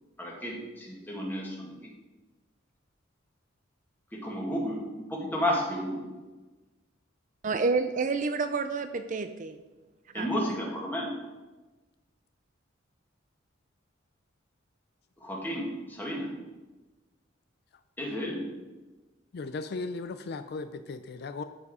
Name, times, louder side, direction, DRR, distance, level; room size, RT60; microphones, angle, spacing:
voice 1, 0.2-1.9 4.1-6.1 10.1-11.1 15.2-16.3 18.0-18.5, equal, 10° left, 2.0 m, -32 dB
voice 2, 7.4-9.6 10.1-10.3, right 4 dB, 40° right, 0.5 m, -29 dB
voice 3, 19.3-21.4, left 3 dB, 55° left, 0.4 m, -36 dB
13.5 x 4.8 x 4.9 m
head